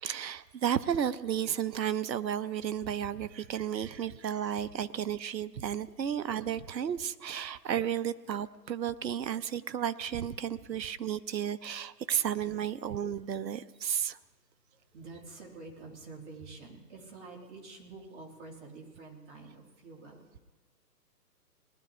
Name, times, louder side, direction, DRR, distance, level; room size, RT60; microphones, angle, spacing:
voice 1, 0.0-14.2, right 9 dB, 85° right, 15 dB, 0.8 m, -33 dB
voice 2, 14.7-20.4, right 3 dB, 45° right, -2 dB, 3.5 m, -48 dB
20.5 x 11.5 x 3.5 m, 1.3 s
hypercardioid pair, 150°, 49 cm